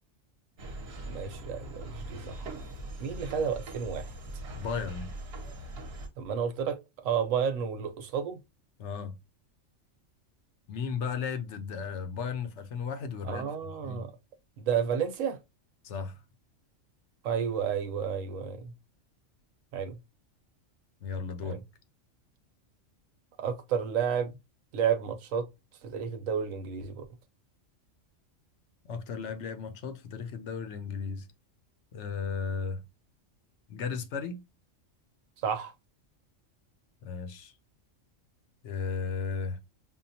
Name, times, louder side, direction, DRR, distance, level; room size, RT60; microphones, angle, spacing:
sound 1, 0.6-6.1, right 1 dB, 55° right, 1.0 m, -41 dB
voice 1, 1.1-2.5 3.0-4.1 6.2-6.8 7.0-8.4 13.2-14.1 14.6-15.4 17.2-18.7 19.7-20.0 21.4-21.6 23.4-24.3 24.7-25.4 25.8-27.0 35.4-35.7, right 7 dB, 80° right, 1.1 m, -31 dB
voice 2, 4.5-5.1 8.8-9.1 10.7-13.5 13.8-14.0 15.8-16.2 21.0-21.6 28.8-31.3 31.9-32.8 33.7-34.4 37.0-37.5 38.6-39.6, left 5 dB, 70° left, 0.9 m, -35 dB
5.4 x 2.2 x 2.6 m
omnidirectional pair, 1.3 m